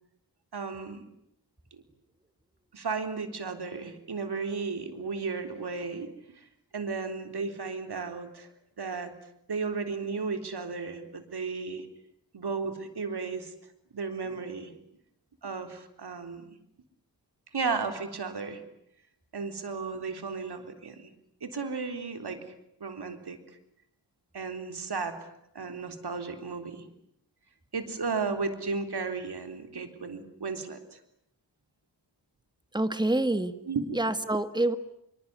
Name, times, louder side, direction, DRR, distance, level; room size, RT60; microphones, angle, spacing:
voice 1, 0.5-1.0 2.7-6.1 6.4-6.5 6.7-8.5 8.8-9.1 9.5-11.9 12.3-13.5 13.9-14.7 15.4-16.4 17.5-18.6 19.3-21.1 21.4-22.4 22.8-23.4 24.3-25.2 25.5-26.9 27.7-31.0 33.7-33.8, right 4 dB, 65° right, 7 dB, 3.8 m, -34 dB
voice 2, 32.7-33.5 33.9-34.8, right 1 dB, 10° right, 11 dB, 1.8 m, -26 dB
26.0 x 24.0 x 9.6 m, 0.76 s
wide cardioid pair, 120°, 42 cm